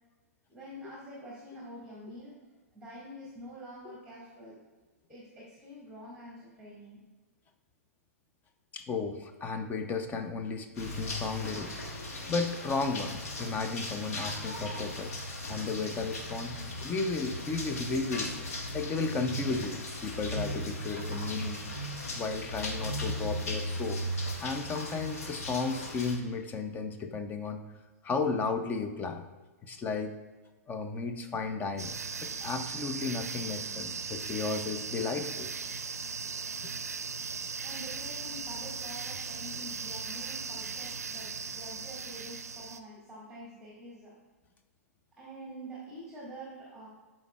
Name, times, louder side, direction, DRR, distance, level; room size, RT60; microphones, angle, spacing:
voice 1, 0.5-2.5 2.7-4.6 5.1-7.0 37.6-44.2 45.2-46.9, right 1 dB, 5° right, -6 dB, 1.8 m, -46 dB
voice 2, 8.7-11.8 12.3-15.1 15.5-21.6 22.1-24.0 24.4-27.6 28.0-29.2 29.6-30.1 30.7-31.9 32.2-35.5 36.6-36.7, left 4 dB, 20° left, 7 dB, 0.6 m, -34 dB
sound 1, 10.8-26.2, left 1 dB, 70° left, 1.2 m, -37 dB
sound 2, 31.8-42.8, right 5 dB, 85° right, 0.4 m, -38 dB
11.5 x 4.4 x 2.3 m, 1.3 s
hypercardioid pair, 115°, 8 cm